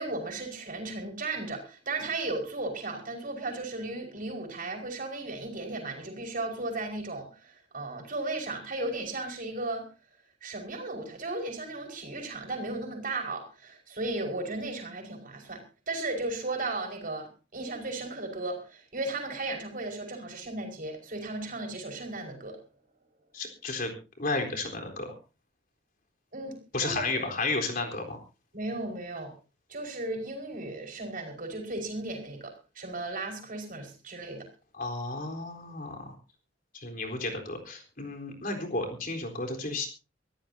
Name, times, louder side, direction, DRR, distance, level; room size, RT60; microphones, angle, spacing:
voice 1, 0.0-9.8 10.4-22.6 26.3-27.3 28.5-29.3 29.7-34.5, right 2 dB, 50° right, 3 dB, 5.3 m, -35 dB
voice 2, 23.3-23.9 24.2-25.1 26.7-28.2 34.8-36.1 36.7-39.9, left 3 dB, 50° left, 3 dB, 4.0 m, -32 dB
24.0 x 15.0 x 2.8 m, 0.32 s
head